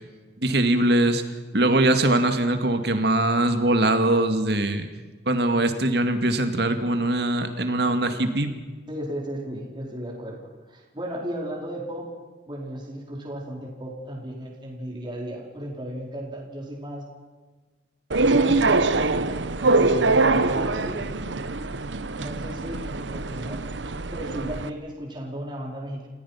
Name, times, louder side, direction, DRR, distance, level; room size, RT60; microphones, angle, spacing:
voice 1, 0.4-1.2 1.5-4.9 5.3-8.5, right 1 dB, 60° right, 7 dB, 2.2 m, -22 dB
voice 2, 8.9-10.4 10.7-12.1 12.5-17.1 18.2-21.0 22.2-23.7 24.1-26.1, equal, 25° right, -1 dB, 4.7 m, -35 dB
sound 1, 18.1-24.7, right 3 dB, 85° right, 1.0 m, -23 dB
29.0 x 17.0 x 5.9 m, 1.4 s
head